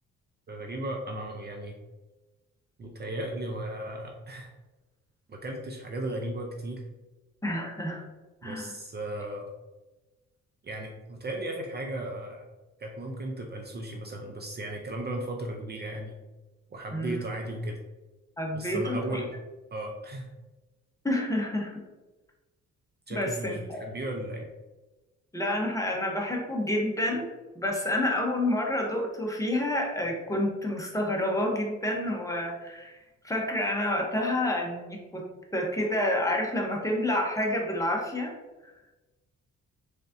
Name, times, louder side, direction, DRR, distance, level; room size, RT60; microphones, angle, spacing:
voice 1, 0.5-1.8 2.8-4.5 5.3-6.8 8.4-9.5 10.6-12.5 12.8-16.2 16.7-17.8 18.5-19.3 19.7-20.3 23.1-24.5, right 1 dB, 35° right, 1 dB, 0.6 m, -36 dB
voice 2, 7.4-8.0 8.4-8.7 16.9-17.2 18.4-19.2 21.0-21.8 23.1-23.9 25.3-27.3 27.5-33.0 33.2-35.2 35.5-38.3, left 1 dB, 10° left, 0 dB, 0.9 m, -29 dB
3.9 x 3.4 x 2.6 m, 1.1 s
cardioid pair, 90°, 30 cm